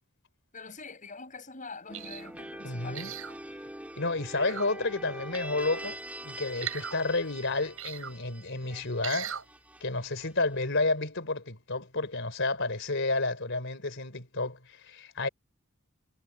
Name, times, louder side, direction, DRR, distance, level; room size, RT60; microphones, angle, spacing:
voice 1, 0.5-3.1, left 4 dB, 35° left, 7.1 m, -44 dB
sound 1, 1.9-10.8, right 1 dB, 5° right, 3.4 m, -44 dB
sound 2, 1.9-2.3 3.0-3.4 4.3-4.7 6.6-7.0 7.8-8.1 9.0-9.4 10.0-10.1, right 9 dB, 70° right, 6.7 m, -38 dB
voice 2, 2.6-3.1 4.0-9.3 9.8-15.3, left 2 dB, 60° left, 4.2 m, -31 dB
head